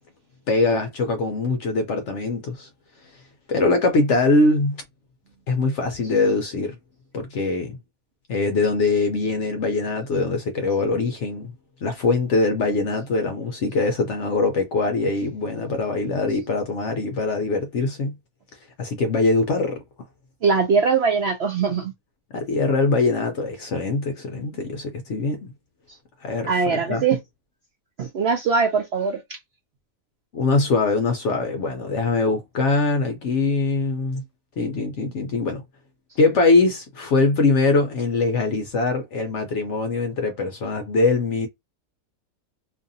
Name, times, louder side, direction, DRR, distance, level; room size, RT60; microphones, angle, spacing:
voice 1, 0.5-2.7 3.5-4.8 5.5-6.8 7.1-7.8 8.3-11.5 11.8-18.1 18.8-19.8 22.3-25.4 26.2-27.0 30.3-34.2 34.6-35.6 36.2-41.5, left 3 dB, 65° left, 0.8 m, -22 dB
voice 2, 20.4-21.9 26.5-27.2 28.0-29.2, right 5 dB, 65° right, 0.6 m, -21 dB
2.7 x 2.4 x 2.6 m
omnidirectional pair, 1.6 m